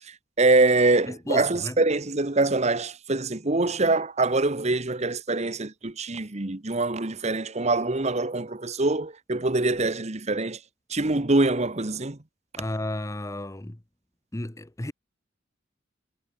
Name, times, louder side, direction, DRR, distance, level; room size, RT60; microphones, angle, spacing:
voice 1, 0.1-10.6 10.9-12.2, right 2 dB, 35° right, 1.2 m, -24 dB
voice 2, 1.1-1.7 12.6-13.8 14.3-14.9, left 1 dB, 15° left, 0.9 m, -33 dB
head